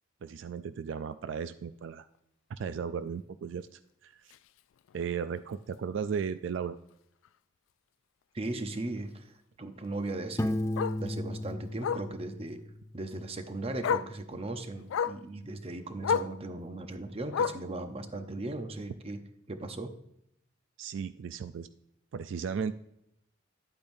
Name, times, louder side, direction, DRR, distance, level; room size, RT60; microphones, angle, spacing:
voice 1, 0.2-2.1 2.5-4.1 4.9-6.8 20.8-21.7 22.1-22.7, right 6 dB, 70° right, 12 dB, 0.3 m, -35 dB
Bark, 4.3-4.5 4.9-5.0 5.4-5.5 5.7-5.8 7.2-7.3 9.8-9.9 10.8-11.0 11.8-12.1 13.3-13.4 13.8-14.2 14.9-15.2 16.0-16.4 17.3-17.7 18.7-18.8, left 7 dB, 90° left, 0.3 m, -30 dB
voice 2, 8.3-10.6 11.0-12.6 12.9-19.2 19.5-19.9, right 2 dB, 30° right, 8 dB, 0.7 m, -37 dB
Piano, 10.4-13.1, left 1 dB, 15° left, 0.4 m, -34 dB
10.5 x 8.6 x 2.6 m, 0.78 s
head